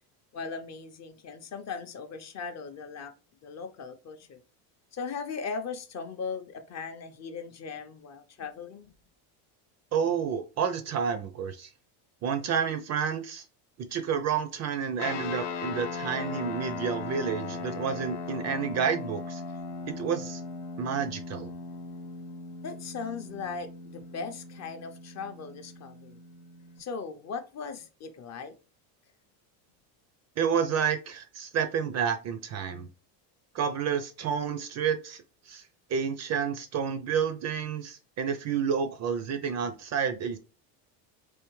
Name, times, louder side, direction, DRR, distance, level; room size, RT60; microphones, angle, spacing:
voice 1, 0.3-3.1 3.4-4.4 4.9-8.9 22.6-26.2 26.8-28.5, left 5 dB, 35° left, 0.5 m, -38 dB
voice 2, 9.9-11.7 12.2-13.5 13.9-19.4 20.0-20.4 20.8-21.5 30.4-32.9 33.5-35.6 35.9-40.4, right 7 dB, 35° right, 0.4 m, -30 dB
sound 1, 15.0-26.8, left 4 dB, 65° left, 0.9 m, -38 dB
3.4 x 3.1 x 3.0 m
supercardioid pair, 115°, 48 cm